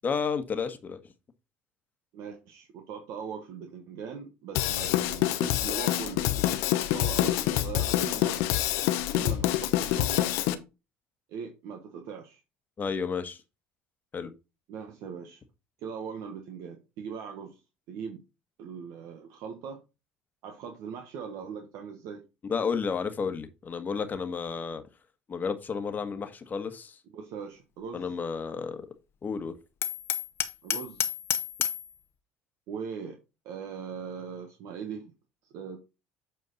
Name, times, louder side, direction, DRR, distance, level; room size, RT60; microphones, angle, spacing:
voice 1, 0.0-1.0 12.8-13.4 14.1-14.3 22.5-24.8 25.3-27.0 27.9-28.9 29.2-29.6, left 5 dB, 35° left, 1.4 m, -31 dB
voice 2, 2.1-6.5 6.9-8.5 9.0-10.3 11.3-12.4 14.7-15.4 15.8-17.6 17.9-18.2 18.6-19.8 20.4-22.2 27.1-28.1 30.6-31.1 32.7-33.2 33.4-35.1 35.5-35.8, right 6 dB, 65° right, 1.3 m, -40 dB
Drum kit / Drum, 4.5-10.5, left 14 dB, 75° left, 0.9 m, -26 dB
Hammer, 29.8-31.9, left 10 dB, 50° left, 1.0 m, -30 dB
8.2 x 4.6 x 4.0 m
supercardioid pair, 80°, 5 cm